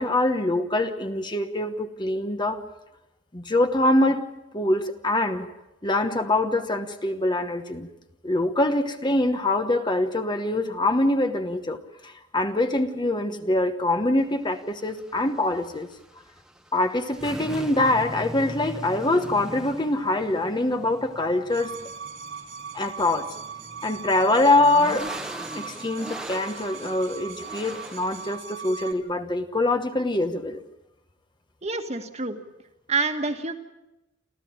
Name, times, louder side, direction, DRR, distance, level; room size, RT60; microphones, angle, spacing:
voice 1, 0.0-2.6 3.3-4.2 4.5-5.5 5.8-7.9 8.2-15.9 16.7-21.7 22.7-23.3 23.8-25.1 25.5-30.6, left 2 dB, 25° left, 7 dB, 1.2 m, -24 dB
sound 1, 14.2-28.4, equal, 5° right, 1.3 m, -41 dB
sound 2, 21.5-28.9, right 6 dB, 85° right, 2.5 m, -39 dB
voice 2, 31.6-32.4 32.9-33.5, right 4 dB, 35° right, 6 dB, 1.8 m, -27 dB
29.0 x 14.0 x 8.8 m, 0.94 s
head